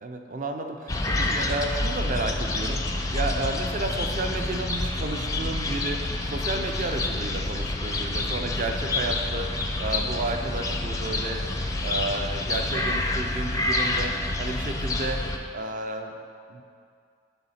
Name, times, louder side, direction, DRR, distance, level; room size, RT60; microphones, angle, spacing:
voice 1, 0.0-11.5 11.8-15.3 15.5-16.2 16.5-16.6, right 2 dB, 45° right, 5 dB, 0.5 m, -32 dB
sound 1, 0.9-15.4, left 2 dB, 20° left, 0.4 m, -28 dB
6.9 x 4.1 x 5.6 m, 2.4 s
head